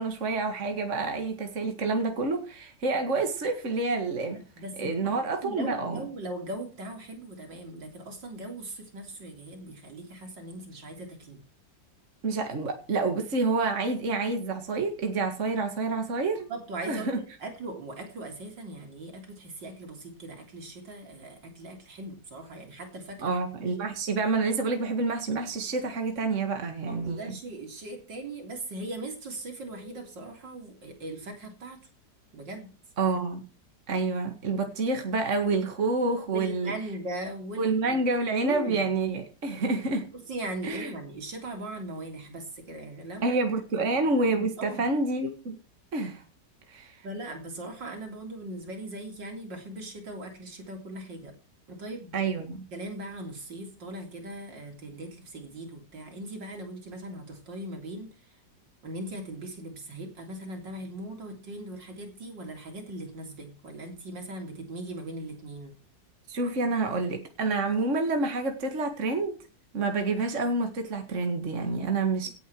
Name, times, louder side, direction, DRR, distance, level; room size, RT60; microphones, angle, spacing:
voice 1, 0.0-4.4 4.8-6.0 12.2-16.5 16.9-17.2 23.2-27.3 33.0-33.4 33.9-36.7 37.6-40.1 40.6-40.9 43.2-45.6 45.9-46.2 46.7-47.0 52.1-52.6 66.3-69.4 69.7-72.3, right 3 dB, 40° right, 5 dB, 2.2 m, -28 dB
voice 2, 4.3-5.1 5.4-11.4 16.5-23.3 26.9-31.8 32.3-32.7 36.3-38.0 38.4-38.9 40.1-43.4 43.8-44.9 47.0-51.3 51.7-52.4 52.7-58.1 58.8-65.8, right 2 dB, 75° right, 3 dB, 4.1 m, -39 dB
17.5 x 9.2 x 4.7 m, 0.33 s
omnidirectional pair, 2.0 m